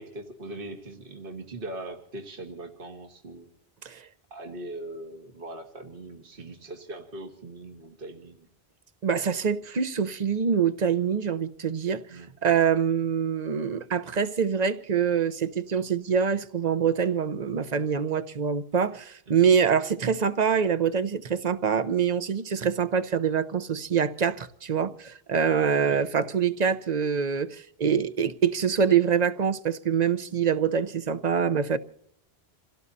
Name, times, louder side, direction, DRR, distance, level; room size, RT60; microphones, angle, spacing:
voice 1, 0.0-3.5 4.3-8.5 12.1-12.3 19.3-19.4 25.8-26.0, right 2 dB, 60° right, 1.8 m, -40 dB
voice 2, 9.0-12.0 12.4-31.8, right 7 dB, 45° right, 0.9 m, -25 dB
28.0 x 17.0 x 2.7 m
omnidirectional pair, 1.0 m